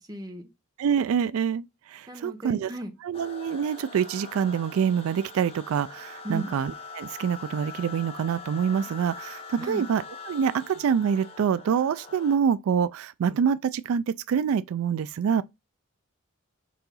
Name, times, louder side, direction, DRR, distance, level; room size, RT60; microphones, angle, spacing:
voice 1, 0.1-0.5 2.1-2.9 6.2-6.5 9.6-9.8, right 1 dB, 20° right, 1.1 m, -35 dB
voice 2, 0.8-2.7 3.0-15.4, right 7 dB, 80° right, 0.3 m, -26 dB
sound 1, 3.1-12.4, left 4 dB, 25° left, 0.9 m, -43 dB
4.7 x 3.8 x 5.4 m
head